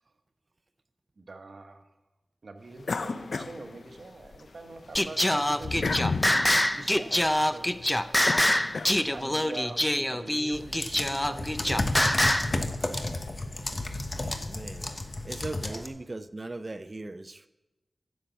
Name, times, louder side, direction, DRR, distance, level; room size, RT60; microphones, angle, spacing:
voice 1, 1.2-1.8 2.4-6.0 6.7-7.8 9.1-11.9 14.8-15.0 15.6-15.9, right 3 dB, 65° right, 6 dB, 1.2 m, -43 dB
sound 1, 2.8-4.4 4.8-9.4, left 4 dB, 75° left, 0.5 m, -34 dB
Singing, 5.0-12.5, left 1 dB, 15° left, 0.6 m, -25 dB
sound 2, 10.5-15.9, left 2 dB, 45° left, 1.1 m, -32 dB
voice 2, 14.1-14.9 15.2-17.5, right 2 dB, 40° right, 12 dB, 0.6 m, -39 dB
10.0 x 7.4 x 8.1 m, 1.0 s
cardioid pair, 45°, 0 cm